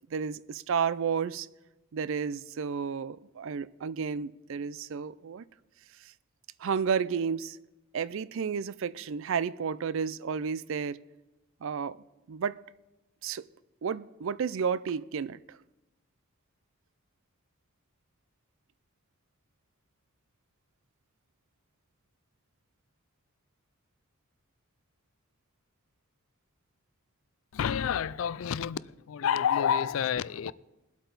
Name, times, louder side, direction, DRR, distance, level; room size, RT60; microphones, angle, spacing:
voice 1, 0.1-1.5 1.9-5.4 6.0-6.1 6.6-7.6 7.9-11.0 11.6-12.0 12.3-12.6 13.2-13.5 13.8-15.6, right 6 dB, 65° right, 0.4 m, -32 dB
voice 2, 27.5-30.5, left 8 dB, 65° left, 0.4 m, -29 dB
20.5 x 8.2 x 4.0 m
head